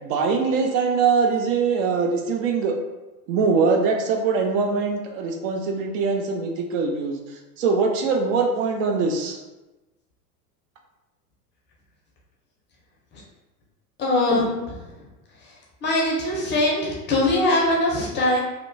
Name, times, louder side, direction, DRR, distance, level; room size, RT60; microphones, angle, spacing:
voice 1, 0.0-2.7 3.3-7.2 7.6-9.4, right 4 dB, 55° right, 3 dB, 0.5 m, -22 dB
voice 2, 14.0-14.8 15.8-18.4, left 1 dB, 25° left, -3 dB, 0.5 m, -22 dB
2.8 x 2.1 x 2.5 m, 1.1 s
hypercardioid pair, 105°, 49 cm